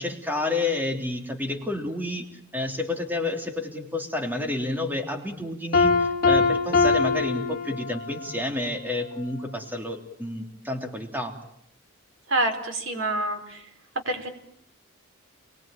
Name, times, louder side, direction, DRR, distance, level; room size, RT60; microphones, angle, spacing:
voice 1, 0.0-2.3 2.5-11.4, left 2 dB, 10° right, 4 dB, 3.3 m, -30 dB
Piano, 5.7-8.3, left 4 dB, 50° left, 3.2 m, -22 dB
voice 2, 12.3-13.6 14.1-14.3, right 1 dB, 65° right, 6 dB, 4.8 m, -27 dB
29.0 x 23.0 x 9.0 m, 0.73 s
head